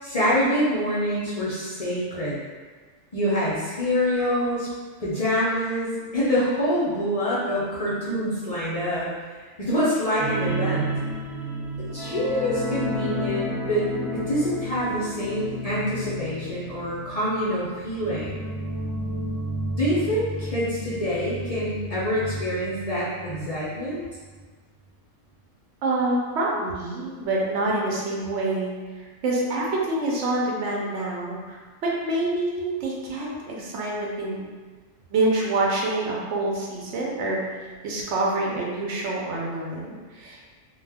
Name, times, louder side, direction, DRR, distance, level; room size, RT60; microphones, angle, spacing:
voice 1, 0.0-2.4 3.1-4.7 5.0-9.1 9.6-10.9 11.8-18.5 19.7-24.0, equal, 45° left, -9 dB, 0.5 m, -26 dB
voice 2, 4.3-5.0 25.8-34.5 35.1-40.5, right 2 dB, 65° right, -3 dB, 0.9 m, -27 dB
sound 1, 10.2-23.4 23.7-23.9 24.3-24.4, equal, 50° right, 0.4 m, -32 dB
2.3 x 2.3 x 3.3 m, 1.4 s
omnidirectional pair, 1.3 m